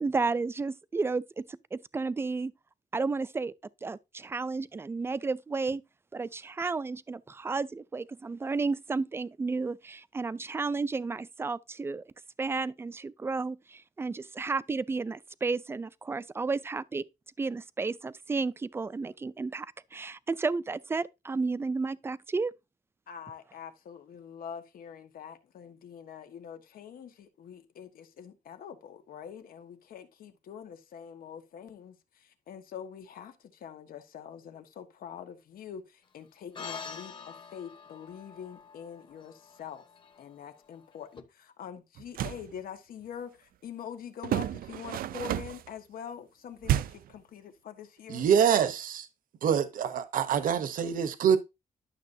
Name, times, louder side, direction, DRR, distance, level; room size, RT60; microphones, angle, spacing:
voice 1, 0.0-2.5 2.9-3.5 3.8-5.8 6.1-12.0 12.4-17.0 17.4-19.7 19.9-22.5, right 4 dB, 15° right, 0.4 m, -32 dB
voice 2, 23.1-39.8 40.2-48.3, left 8 dB, 85° left, 1.4 m, -45 dB
sound 1, 36.5-41.2, left 5 dB, 35° left, 1.2 m, -46 dB
sound 2, 42.0-42.5 44.2-45.7 46.6-47.1, right 12 dB, 90° right, 0.4 m, -31 dB
voice 3, 48.1-49.1 49.4-51.4, right 8 dB, 70° right, 0.8 m, -25 dB
11.5 x 7.0 x 2.7 m
wide cardioid pair, 160°, 15 cm